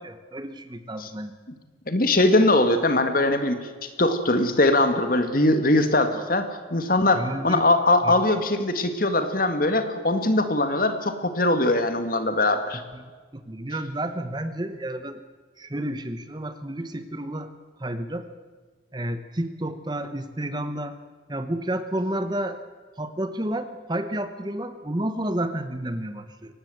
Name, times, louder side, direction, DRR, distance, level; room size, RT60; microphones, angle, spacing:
voice 1, 0.0-1.4 7.1-7.7 8.0-8.1 12.7-13.0 13.3-15.2 15.6-17.5 17.8-18.3 18.9-21.0 21.3-22.6 23.0-26.5, right 1 dB, 20° right, 10 dB, 1.0 m, -31 dB
voice 2, 1.9-12.8, left 2 dB, 45° left, 8 dB, 2.1 m, -21 dB
23.5 x 18.5 x 7.9 m, 1.5 s
head